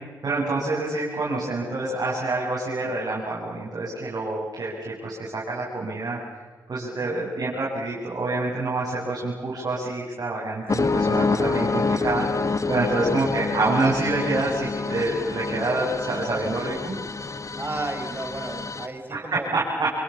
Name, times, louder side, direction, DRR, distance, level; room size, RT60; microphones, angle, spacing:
voice 1, 0.2-6.2 6.7-17.0 19.1-19.9, right 2 dB, 50° right, -6 dB, 7.7 m, -27 dB
voice 2, 7.0-7.4 13.1-13.4 17.6-19.5, right 2 dB, 30° right, 4 dB, 5.9 m, -34 dB
sound 1, 10.7-18.9, left 4 dB, 45° left, 1.6 m, -27 dB
27.5 x 24.0 x 7.2 m, 1.4 s
supercardioid pair, 40°, 8 cm